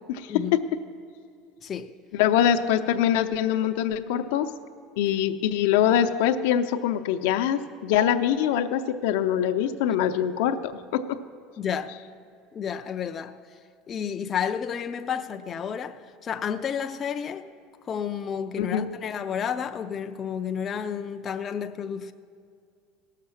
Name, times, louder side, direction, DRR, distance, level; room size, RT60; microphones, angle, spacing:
voice 1, 0.1-0.6 2.2-4.5 5.0-11.2 18.6-18.9, left 10 dB, 80° left, 0.6 m, -24 dB
voice 2, 11.6-12.0 12.5-13.4 13.9-17.4 17.8-22.1, left 7 dB, 25° left, 0.4 m, -31 dB
17.0 x 6.6 x 7.1 m
cardioid pair, 150°, 0 cm